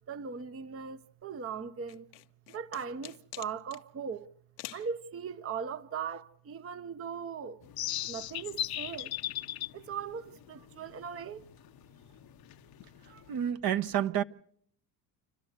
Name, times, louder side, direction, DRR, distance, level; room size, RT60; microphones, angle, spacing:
voice 1, 0.1-2.1 2.5-4.3 4.7-7.6 8.1-9.1 9.7-11.4 13.1-13.3, right 6 dB, 25° right, 0.8 m, -39 dB
sound 1, 1.9-3.8 4.6-4.9, left 17 dB, 85° left, 1.2 m, -46 dB
sound 2, 7.6-13.5, left 12 dB, 45° left, 0.8 m, -39 dB
voice 2, 13.0-14.2, right 10 dB, 45° right, 1.1 m, -30 dB
28.5 x 12.5 x 8.0 m
supercardioid pair, 80°, 50 cm